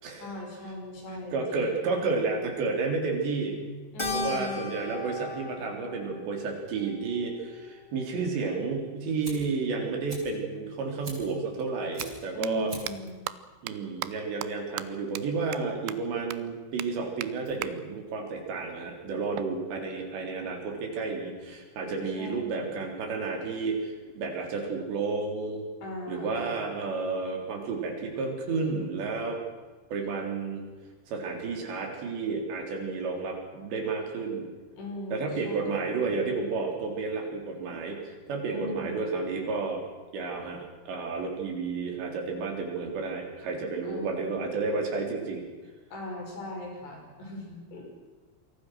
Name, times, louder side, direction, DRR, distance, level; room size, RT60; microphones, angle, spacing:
voice 1, 0.2-2.0 3.9-4.7 12.3-13.2 22.2-22.9 25.8-26.5 34.8-36.1 38.5-39.0 43.8-44.3 45.9-47.9, left 2 dB, 65° left, 0 dB, 8.0 m, -39 dB
voice 2, 1.3-3.6 4.1-12.7 13.6-25.7 26.1-29.4 29.9-30.6 31.1-34.5 35.1-39.8 40.1-45.4, right 4 dB, 70° right, 2 dB, 5.9 m, -31 dB
Keyboard (musical), 4.0-8.6, left 3 dB, 50° left, 0.3 m, -38 dB
Fire, 9.2-19.3, right 2 dB, 25° right, 4.8 m, -48 dB
sound 1, 10.7-10.8 11.8-12.1 12.4-12.5 12.9-13.0 13.3-13.4 13.7-13.8 14.0-14.1 14.4-14.5 14.8-14.9 15.2-15.3 15.5-15.6 15.9-16.0 16.3-16.4 16.8-16.9 17.2-17.3 17.6-17.7 19.4-20.4, right 16 dB, 90° right, 3.3 m, -37 dB
28.0 x 22.0 x 6.3 m, 1.3 s
omnidirectional pair, 5.3 m